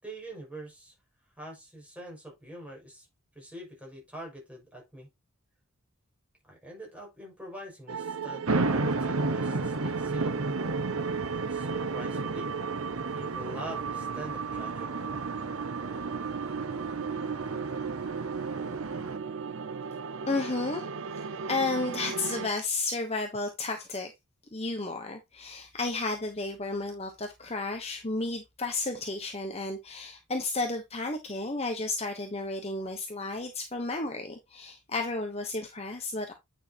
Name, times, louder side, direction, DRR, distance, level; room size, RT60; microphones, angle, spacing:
voice 1, 0.0-0.9 1.4-3.1 3.3-5.1 6.5-10.4 11.3-12.5 13.1-15.0, right 1 dB, 5° right, 6.0 m, -44 dB
sound 1, 7.9-22.5, right 6 dB, 60° right, 0.5 m, -36 dB
sound 2, 8.5-19.2, right 2 dB, 80° right, 1.3 m, -33 dB
voice 2, 20.3-24.1 24.5-36.3, left 3 dB, 30° left, 1.1 m, -32 dB
9.5 x 6.4 x 3.0 m
head